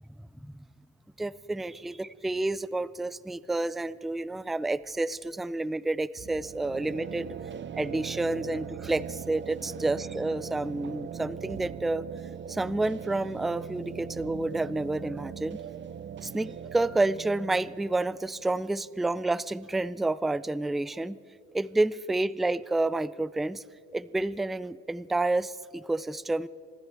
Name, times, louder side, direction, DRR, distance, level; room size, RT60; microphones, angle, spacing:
voice 1, 1.2-7.4 7.7-12.0 12.5-15.6 16.2-21.2 21.5-23.6 23.9-26.5, right 2 dB, ahead, 18 dB, 0.3 m, -29 dB
sound 1, 6.2-19.8, right 8 dB, 40° right, 0.6 m, -41 dB
26.5 x 14.0 x 3.3 m, 2.4 s
cardioid pair, 90°, 30 cm